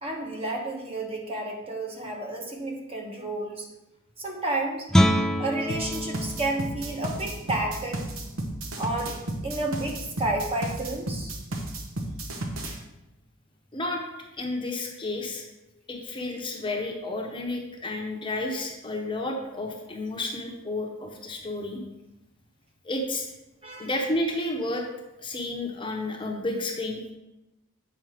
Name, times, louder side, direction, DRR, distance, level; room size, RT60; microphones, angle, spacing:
voice 1, 0.0-3.7 4.2-4.9 5.4-8.0 8.8-9.2 9.4-11.3 23.6-23.9, right 2 dB, 30° right, 0 dB, 1.1 m, -31 dB
Guitar, 4.9-10.5, equal, 5° left, 0.3 m, -29 dB
sound 1, 5.7-12.8, right 1 dB, 75° right, 1.0 m, -33 dB
voice 2, 13.7-14.0 14.4-15.4 15.9-21.8 22.8-23.3 23.8-24.9 25.2-27.1, left 2 dB, 25° left, 1 dB, 0.9 m, -31 dB
8.0 x 4.4 x 5.0 m, 0.94 s
head